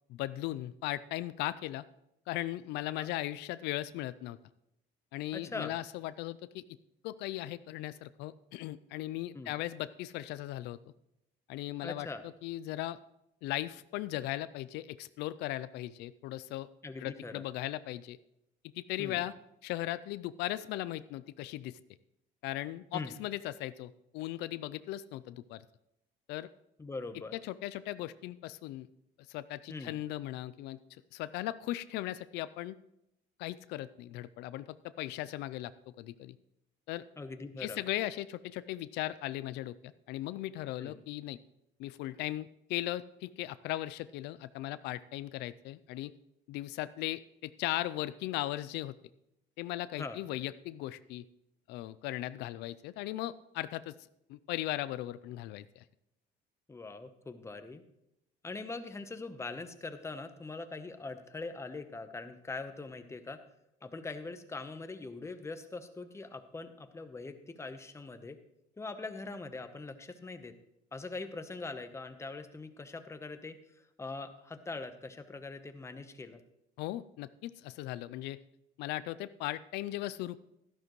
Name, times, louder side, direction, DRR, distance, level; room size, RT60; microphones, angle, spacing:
voice 1, 0.1-1.9 2.3-4.4 5.1-6.6 7.0-10.8 11.5-13.0 13.4-16.7 17.0-18.2 18.8-19.3 19.6-21.8 22.4-25.6 26.3-26.5 27.3-28.9 29.3-30.8 31.1-32.8 33.4-36.4 36.9-37.0 37.6-41.4 41.8-46.1 46.5-49.0 49.6-51.3 51.7-54.0 54.3-55.8 76.8-78.4 78.8-80.4, left 15 dB, 90° left, 15 dB, 0.4 m, -38 dB
voice 2, 5.3-5.8 9.3-9.5 11.8-12.2 16.8-17.4 19.0-19.2 22.9-23.1 26.8-27.3 29.7-29.9 37.2-37.8 40.8-40.9 50.0-50.2 56.7-57.8 58.4-63.4 63.8-68.4 68.8-70.5 70.9-73.6 74.0-76.4, left 3 dB, 15° left, 8 dB, 0.9 m, -42 dB
12.5 x 11.5 x 3.1 m, 0.83 s
cardioid pair, 110°, 17 cm